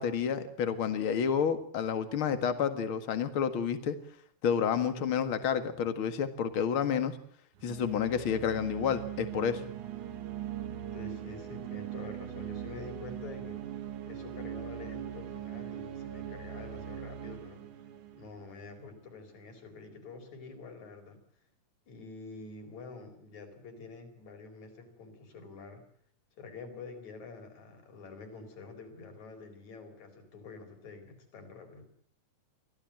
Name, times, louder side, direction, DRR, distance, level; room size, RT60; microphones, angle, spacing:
voice 1, 0.0-4.0 4.4-7.2 7.6-9.6, left 7 dB, 50° left, 10 dB, 2.5 m, -30 dB
sound 1, 7.6-19.1, right 10 dB, 85° right, 2.9 m, -41 dB
voice 2, 10.9-13.6 14.1-17.9 18.1-21.2 21.9-25.8 26.4-31.8, left 4 dB, 70° left, 6 dB, 5.8 m, -47 dB
25.5 x 16.0 x 7.7 m, 0.62 s
omnidirectional pair, 3.4 m